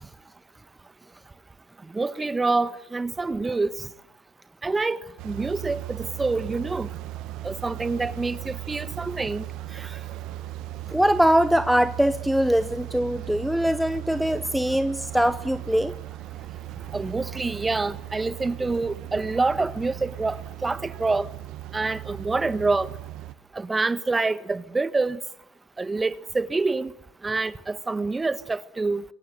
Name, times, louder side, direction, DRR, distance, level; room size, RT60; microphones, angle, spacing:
voice 1, 1.9-3.9 4.6-6.9 7.4-9.4 9.7-10.0 16.9-21.3 21.7-22.9 23.5-25.2 25.8-26.9 27.2-29.0, right 3 dB, 20° right, 1.4 m, -27 dB
sound 1, 5.2-23.3, right 14 dB, 70° right, 1.3 m, -37 dB
voice 2, 10.9-15.9, equal, ahead, 1.0 m, -22 dB
27.5 x 23.0 x 7.8 m
supercardioid pair, 80°, 0 cm